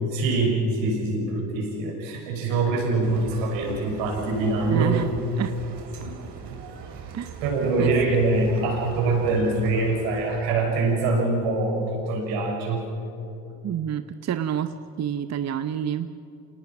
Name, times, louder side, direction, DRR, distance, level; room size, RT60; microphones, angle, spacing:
voice 1, 0.1-5.0 6.0-6.1 7.4-12.8, right 3 dB, 70° right, 0 dB, 6.4 m, -24 dB
sound 1, 3.0-10.4, right 6 dB, 55° right, 2.7 m, -40 dB
voice 2, 4.7-5.1 5.4-5.6 7.1-7.3 7.8-7.9 13.6-16.1, right 9 dB, 35° right, 11 dB, 0.8 m, -28 dB
28.0 x 19.0 x 6.0 m, 2.8 s
hypercardioid pair, 60°, 48 cm